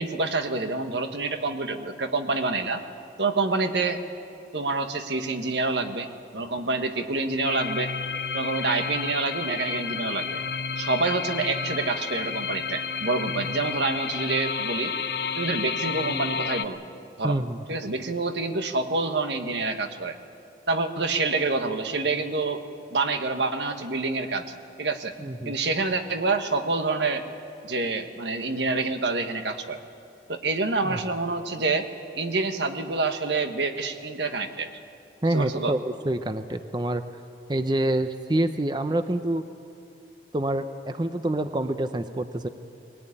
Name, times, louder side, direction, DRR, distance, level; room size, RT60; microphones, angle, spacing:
voice 1, 0.0-2.8 3.2-4.0 4.5-7.9 8.3-10.4 10.8-14.9 15.3-16.8 17.2-17.4 17.7-20.2 20.7-22.6 22.9-24.4 24.8-25.1 25.4-27.3 27.6-29.8 30.3-31.9 32.1-34.7 35.3-35.7, right 3 dB, 85° right, 7 dB, 1.5 m, -27 dB
sound 1, 7.4-16.7, left 6 dB, 60° left, 0.7 m, -31 dB
voice 2, 17.2-17.6 25.2-25.6 30.8-31.0 35.2-37.0 37.5-39.5 40.3-42.5, right 1 dB, 25° right, 9 dB, 0.7 m, -27 dB
21.0 x 18.5 x 9.9 m, 2.6 s
head